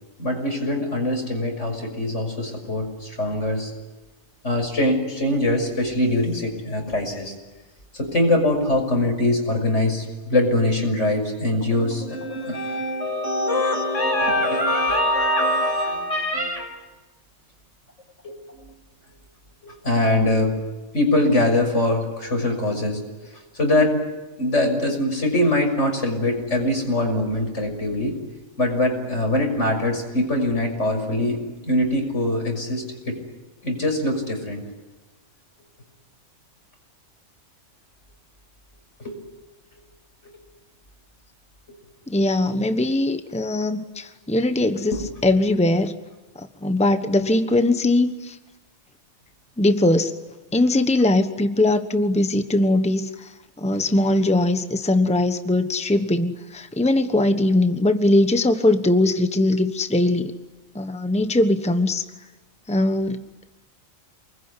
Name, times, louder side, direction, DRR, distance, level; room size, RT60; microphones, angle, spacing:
voice 1, 0.2-3.7 4.4-7.4 7.9-16.8 18.2-18.7 19.6-20.6 20.9-24.0 24.4-28.2 28.6-33.2 33.6-34.6 39.0-39.2 40.2-40.3 44.9-45.0, left 1 dB, 80° left, 3 dB, 6.7 m, -23 dB
voice 2, 42.1-46.0 46.3-48.4 49.6-50.1 50.5-53.3 53.6-60.3 60.7-62.0 62.7-63.2, left 2 dB, 5° left, 9 dB, 1.2 m, -20 dB
28.5 x 21.5 x 9.9 m, 1.2 s
omnidirectional pair, 1.2 m